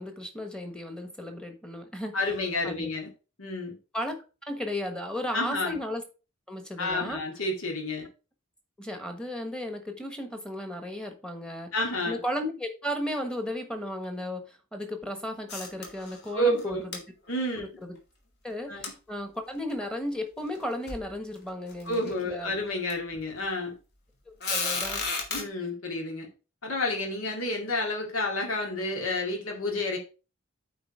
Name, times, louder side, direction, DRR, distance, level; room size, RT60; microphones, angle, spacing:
voice 1, 0.0-2.2 2.6-2.9 3.9-4.2 4.5-6.0 6.5-7.2 8.8-11.7 12.1-17.0 17.6-18.0 18.4-22.5 24.3-25.0, left 1 dB, 5° left, 5 dB, 1.3 m, -35 dB
voice 2, 2.1-3.1 3.4-3.8 5.3-5.8 6.8-8.1 11.7-12.2 16.3-16.8 17.3-17.6 18.7-18.9 21.9-23.7 25.3-26.3 26.6-30.0, left 1 dB, 80° left, 1 dB, 2.1 m, -30 dB
sound 1, 15.5-16.3 16.6-16.7 16.9-17.0 18.8-18.9 19.7-19.8 20.6-20.7 20.9-21.1 21.7-22.1 22.9-23.0 24.4-25.4, left 4 dB, 55° left, 2.2 m, -32 dB
8.6 x 4.0 x 4.9 m, 0.33 s
head